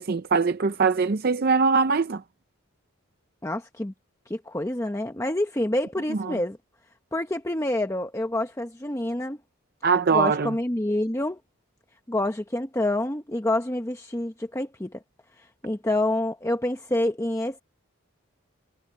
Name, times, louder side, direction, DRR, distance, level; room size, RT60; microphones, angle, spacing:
voice 1, 0.0-2.2 6.2-6.4 9.8-10.5, right 5 dB, 45° right, 0.5 m, -22 dB
voice 2, 3.4-3.9 4.3-6.6 7.1-9.4 10.1-11.4 12.1-15.0 15.4-17.6, left 1 dB, 15° left, 0.8 m, -27 dB
head